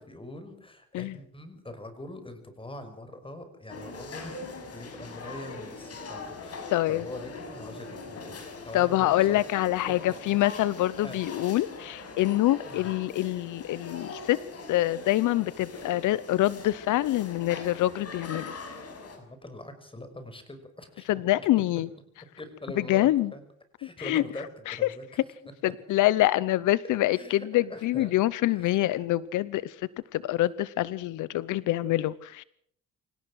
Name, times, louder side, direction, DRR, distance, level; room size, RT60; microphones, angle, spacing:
voice 1, 0.0-4.4 4.7-9.4 11.0-11.2 12.6-12.9 19.2-21.4 22.4-23.4 23.8-25.0 27.1-28.2 28.5-29.0, left 1 dB, 15° left, 9 dB, 5.7 m, -43 dB
sound 1, 3.7-19.2, left 3 dB, 55° left, 6.0 m, -42 dB
voice 2, 6.7-7.0 8.7-14.4 14.7-18.6 21.1-21.9 22.8-23.3 24.0-24.2 24.7-24.9 25.6-32.4, left 15 dB, 85° left, 19 dB, 0.8 m, -26 dB
25.5 x 17.5 x 6.4 m, 0.66 s
cardioid pair, 90°, 30 cm